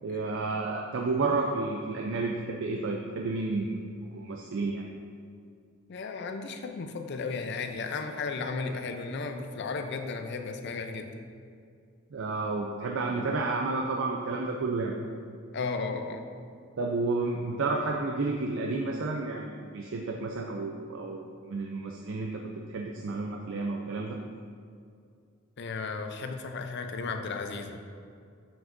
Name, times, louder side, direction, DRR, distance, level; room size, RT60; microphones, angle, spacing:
voice 1, 0.0-4.8 12.1-14.9 16.8-24.2, right 3 dB, 65° right, 1 dB, 0.4 m, -31 dB
voice 2, 5.9-11.2 15.5-16.2 25.6-27.8, left 4 dB, 55° left, 6 dB, 0.5 m, -34 dB
7.2 x 6.1 x 2.6 m, 2.3 s
head